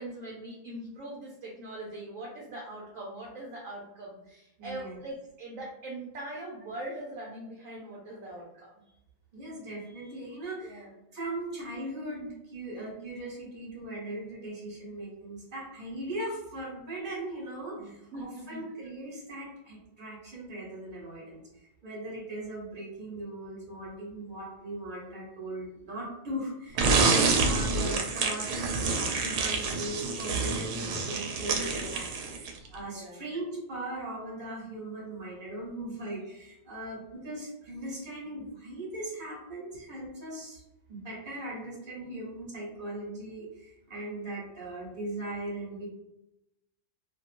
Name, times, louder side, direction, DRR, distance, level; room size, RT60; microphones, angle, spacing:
voice 1, 0.0-8.7 10.6-10.9 17.8-18.6 32.9-33.2, right 1 dB, 65° right, -3 dB, 0.9 m, -42 dB
voice 2, 4.6-5.0 9.3-10.9 11.1-40.6 40.9-45.9, right 1 dB, 35° right, -5 dB, 1.2 m, -39 dB
sound 1, 26.8-32.7, right 4 dB, 90° right, 1.1 m, -27 dB
2.8 x 2.8 x 2.5 m, 0.88 s
omnidirectional pair, 1.7 m